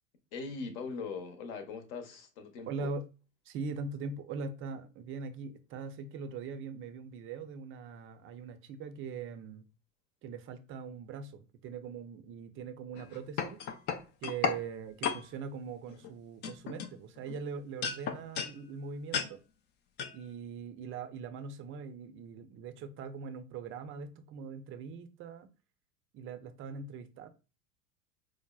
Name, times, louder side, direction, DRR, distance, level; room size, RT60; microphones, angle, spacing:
voice 1, 0.3-2.9, left 4 dB, 55° left, 0.9 m, -41 dB
voice 2, 2.7-3.0 3.5-9.6 10.2-13.6 14.2-19.4 20.1-25.5 26.1-27.3, right 5 dB, 30° right, 0.5 m, -41 dB
sound 1, 13.0-14.6 15.0-15.2 15.9-16.1 16.4-17.4 17.8-18.6 19.1-19.3 20.0-20.1, left 7 dB, 30° left, 0.4 m, -34 dB
4.7 x 2.1 x 2.3 m
hypercardioid pair, 80°, 41 cm